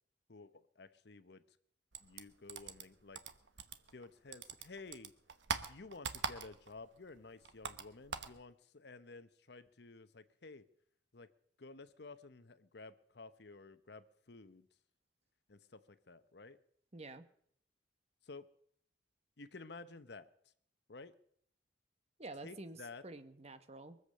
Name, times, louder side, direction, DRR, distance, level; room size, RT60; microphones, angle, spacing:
voice 1, 0.3-1.4 2.0-3.2 3.9-5.1 5.7-10.6 11.1-11.3 11.6-14.7 15.5-16.6 18.2-18.5 19.4-20.3 20.9-21.1 22.4-23.0, left 3 dB, 60° left, 13 dB, 0.9 m, -53 dB
sound 1, 1.9-4.1 4.3-6.8 7.1-8.4, right 5 dB, 75° right, 1.2 m, -42 dB
voice 2, 16.9-17.3 22.2-24.0, right 2 dB, 35° right, 9 dB, 1.2 m, -49 dB
23.0 x 8.1 x 6.6 m, 0.65 s
head